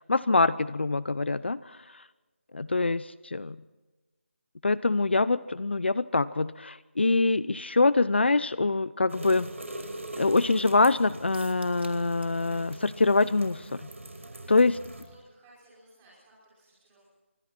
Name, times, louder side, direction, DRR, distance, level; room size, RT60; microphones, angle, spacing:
voice 1, 0.1-2.0 2.5-3.6 4.6-9.5 10.2-13.8 14.5-14.8, left 3 dB, 55° left, 18 dB, 0.6 m, -24 dB
sound 1, 9.1-15.0, right 1 dB, 80° right, 5.5 m, -42 dB
sound 2, 11.3-12.4 12.7-12.8 13.2-13.3, right 3 dB, 60° right, 2.5 m, -50 dB
voice 2, 14.1-14.8 15.1-17.1, right 1 dB, 10° right, -7 dB, 5.5 m, -59 dB
27.5 x 24.0 x 4.4 m, 1.2 s
figure-of-eight pair, 180°, 7 cm